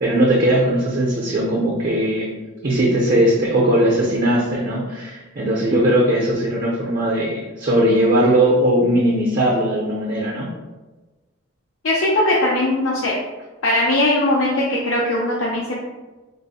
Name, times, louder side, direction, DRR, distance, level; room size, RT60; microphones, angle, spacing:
voice 1, 0.0-2.4 2.6-10.5, right 1 dB, 45° right, -3 dB, 0.5 m, -19 dB
voice 2, 11.8-13.1 13.6-15.8, left 1 dB, 80° left, -4 dB, 0.5 m, -19 dB
3.3 x 2.0 x 4.0 m, 1.2 s
head